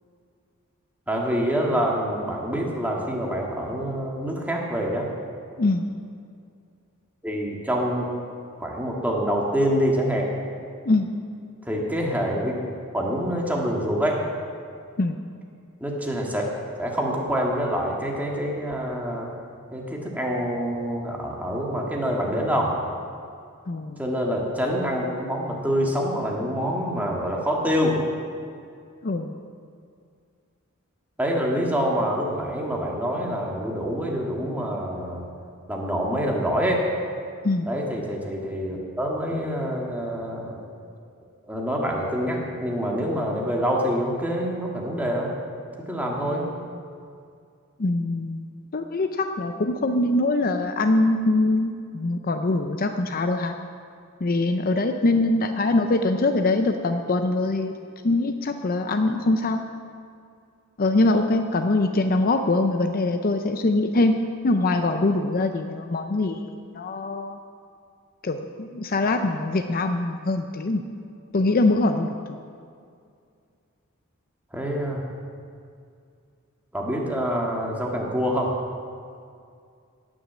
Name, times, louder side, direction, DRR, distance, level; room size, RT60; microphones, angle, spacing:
voice 1, 1.1-5.1 7.2-8.1 8.5-10.3 11.7-12.5 12.9-14.2 15.8-16.4 16.8-19.3 19.7-22.7 24.0-28.0 31.2-35.2 35.7-36.9 37.7-40.6 41.5-45.3 45.9-46.5 74.5-75.1 76.7-78.5, equal, 10° right, -2 dB, 1.8 m, -26 dB
voice 2, 23.7-24.0 29.0-29.4 37.4-37.7 47.8-48.4 48.7-53.6 54.2-57.7 58.0-59.6 60.8-64.1 64.4-67.4 68.2-70.8 71.3-72.4, left 2 dB, 40° left, 6 dB, 0.6 m, -23 dB
18.0 x 6.3 x 7.5 m, 2.3 s
head